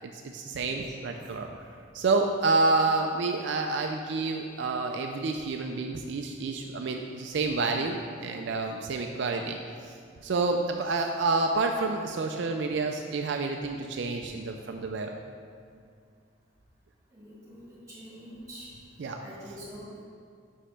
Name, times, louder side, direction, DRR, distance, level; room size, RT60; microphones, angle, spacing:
voice 1, 0.0-1.5 1.9-10.0 10.2-15.2 19.0-19.2, right 3 dB, 60° right, 3 dB, 0.4 m, -29 dB
voice 2, 17.1-18.7 19.2-19.9, equal, 15° right, -8 dB, 1.9 m, -45 dB
5.4 x 5.1 x 5.7 m, 2.2 s
head